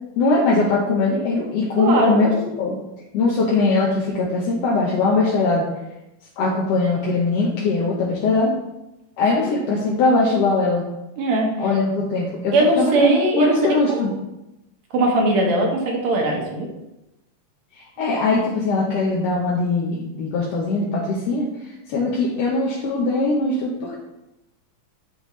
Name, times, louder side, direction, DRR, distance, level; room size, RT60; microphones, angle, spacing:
voice 1, 0.2-2.8 3.1-5.7 6.4-8.5 9.2-10.8 11.6-14.1 17.8-21.5 21.9-24.0, left 3 dB, 70° left, -4 dB, 1.8 m, -21 dB
voice 2, 1.8-2.2 9.4-9.6 11.2-11.6 12.5-13.6 13.9-14.0 14.9-16.7 18.0-18.1, right 1 dB, 70° right, 0 dB, 2.2 m, -20 dB
9.9 x 3.5 x 3.1 m, 0.93 s
omnidirectional pair, 3.4 m